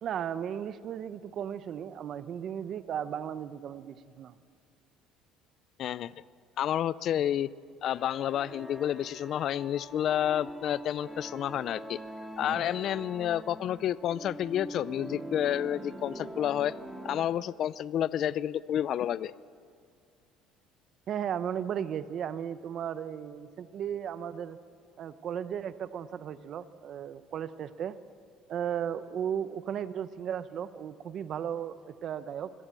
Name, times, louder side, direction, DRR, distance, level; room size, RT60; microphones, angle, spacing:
voice 1, 0.0-4.3 12.4-12.7 21.1-24.6 25.0-28.0 28.5-32.5, right 9 dB, 50° right, 13 dB, 0.8 m, -35 dB
voice 2, 5.8-6.1 6.6-7.5 7.8-12.0 12.4-16.7 17.0-19.3, left 10 dB, 55° left, 19 dB, 0.5 m, -30 dB
sound 1, 7.8-17.2, right 1 dB, ahead, 2.3 m, -43 dB
24.5 x 17.0 x 7.5 m, 2.2 s
supercardioid pair, 100°, 0 cm